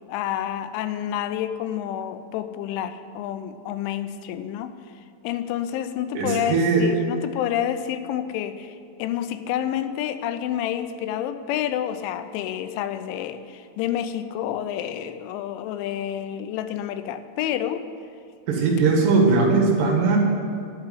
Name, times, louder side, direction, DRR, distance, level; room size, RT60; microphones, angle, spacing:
voice 1, 0.1-4.7 5.2-17.8 19.3-19.4, left 10 dB, 90° left, 10 dB, 3.0 m, -29 dB
voice 2, 6.2-6.9 18.5-20.2, right 4 dB, 65° right, -1 dB, 3.5 m, -19 dB
11.5 x 6.9 x 9.5 m, 2.5 s
omnidirectional pair, 5.4 m